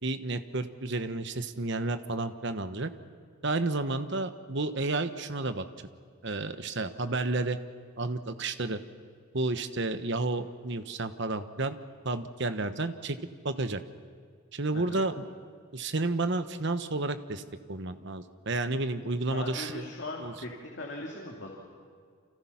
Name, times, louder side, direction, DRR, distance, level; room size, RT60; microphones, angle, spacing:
voice 1, 0.0-2.9 3.4-5.6 6.2-7.6 8.0-8.8 9.3-11.8 12.0-13.2 13.4-13.8 14.5-15.3 15.7-17.4 17.7-19.9 20.2-20.3, right 2 dB, 55° right, 10 dB, 1.1 m, -31 dB
voice 2, 14.7-15.1 19.3-21.5, left 2 dB, 55° left, -1 dB, 2.8 m, -39 dB
29.5 x 26.0 x 5.9 m, 2.1 s
head